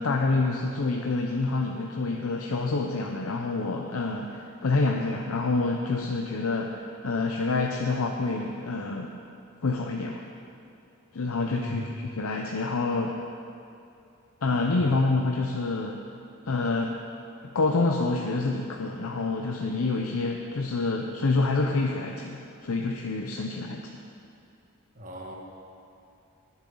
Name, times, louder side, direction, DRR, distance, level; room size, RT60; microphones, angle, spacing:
voice 1, 0.0-9.2 9.6-10.2 11.1-13.2 14.4-16.0 16.5-16.9 17.4-23.9, left 3 dB, 80° left, 1 dB, 0.7 m, -27 dB
voice 2, 24.9-25.3, left 1 dB, 40° right, -1 dB, 1.6 m, -38 dB
20.5 x 7.4 x 3.9 m, 2.6 s
head